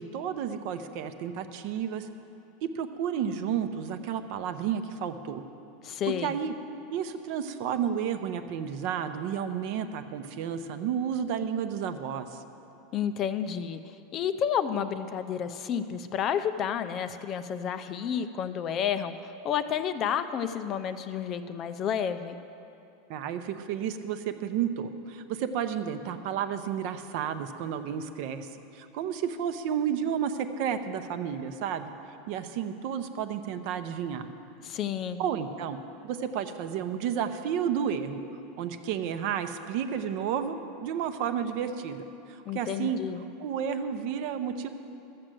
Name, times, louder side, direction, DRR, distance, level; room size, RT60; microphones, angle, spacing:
voice 1, 0.0-2.1 2.6-5.4 6.1-6.5 6.9-12.4 23.1-31.9 32.3-34.3 35.2-35.8 36.0-38.2 38.6-43.0 43.4-44.7, right 8 dB, 50° right, 9 dB, 0.7 m, -31 dB
voice 2, 5.8-6.3 12.9-22.4 34.6-35.2 42.5-43.3, left 8 dB, 30° left, 10 dB, 0.4 m, -31 dB
13.0 x 7.7 x 7.6 m, 2.8 s
supercardioid pair, 170°, 0 cm